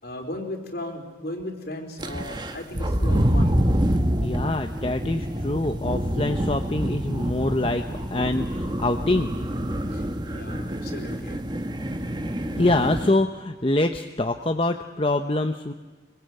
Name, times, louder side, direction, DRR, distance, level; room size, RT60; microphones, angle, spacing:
voice 1, 0.0-3.6 9.9-11.4, left 1 dB, 55° left, 4 dB, 4.1 m, -36 dB
sound 1, 2.0-13.1, equal, 20° right, 1.5 m, -26 dB
voice 2, 4.2-9.3 12.6-15.7, left 2 dB, 30° left, 6 dB, 0.9 m, -25 dB
25.0 x 23.5 x 9.1 m, 1.3 s
head